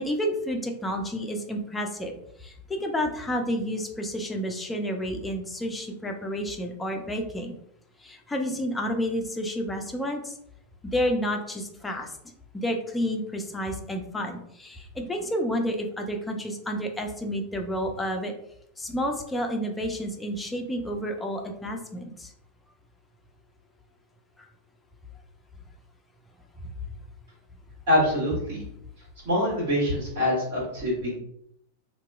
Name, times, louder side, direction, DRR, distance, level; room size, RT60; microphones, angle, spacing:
voice 1, 0.0-7.5 8.0-10.4 10.8-12.1 12.5-18.3 18.8-22.3 24.4-24.5 26.6-26.7, equal, 10° left, 3 dB, 0.4 m, -30 dB
voice 2, 27.9-28.6 29.2-31.2, left 1 dB, 50° right, -6 dB, 1.4 m, -25 dB
2.8 x 2.2 x 2.3 m, 0.73 s
figure-of-eight pair, 90°, 0 cm